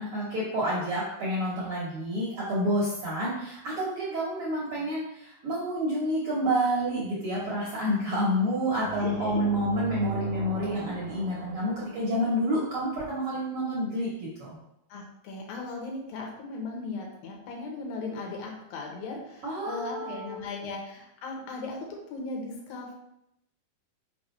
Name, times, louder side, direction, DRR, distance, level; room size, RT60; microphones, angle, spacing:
voice 1, 0.0-14.5 19.4-20.4, equal, 60° right, -6 dB, 1.5 m, -29 dB
sound 1, 8.8-12.6, right 6 dB, 80° right, 1.9 m, -39 dB
voice 2, 9.0-9.4 14.9-22.9, left 3 dB, 85° left, 0 dB, 2.9 m, -37 dB
5.8 x 5.2 x 3.2 m, 0.81 s
omnidirectional pair, 4.1 m